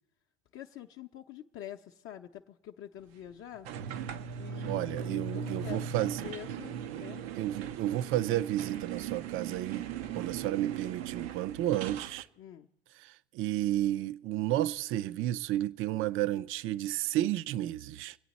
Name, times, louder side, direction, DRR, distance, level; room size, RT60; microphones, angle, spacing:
voice 1, 0.5-3.7 4.4-7.2 12.4-12.7, left 11 dB, 45° left, 0.6 m, -46 dB
sound 1, 3.6-12.2, right 8 dB, 85° right, 0.6 m, -39 dB
voice 2, 4.6-6.3 7.4-12.3 13.0-18.2, right 14 dB, 45° right, 0.4 m, -32 dB
25.5 x 8.5 x 4.1 m
supercardioid pair, 100°, 30 cm